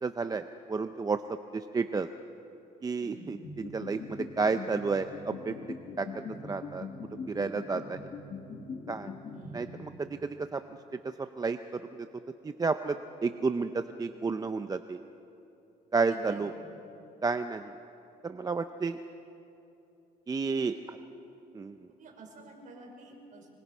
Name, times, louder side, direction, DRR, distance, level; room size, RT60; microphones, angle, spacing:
voice 1, 0.0-1.2 1.5-2.1 2.8-5.5 6.0-6.1 6.4-6.9 7.3-8.0 8.9-9.1 9.5-10.6 10.9-12.1 12.4-15.0 15.9-16.5 17.2-17.7 18.2-19.0 20.3-20.7 21.5-21.8, right 4 dB, 20° right, 9 dB, 0.6 m, -31 dB
voice 2, 3.0-3.4 9.3-9.8 16.1-16.5 20.6-21.0 22.0-23.5, right 2 dB, 50° right, 1 dB, 5.4 m, -49 dB
sound 1, 3.4-10.1, left 4 dB, 45° left, 2.2 m, -42 dB
25.0 x 24.0 x 5.5 m, 2.8 s
cardioid pair, 110°, 17 cm